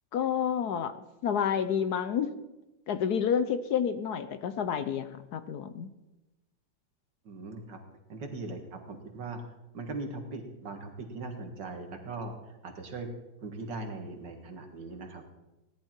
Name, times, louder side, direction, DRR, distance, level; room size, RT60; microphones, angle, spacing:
voice 1, 0.1-0.9 1.2-2.3 2.9-5.9, left 8 dB, 65° left, 11 dB, 1.2 m, -29 dB
voice 2, 7.3-7.8 8.1-9.4 9.7-12.3 12.6-13.1 13.4-15.2, right 3 dB, 75° right, 4 dB, 2.5 m, -39 dB
17.5 x 11.0 x 4.5 m, 1.0 s
omnidirectional pair, 2.0 m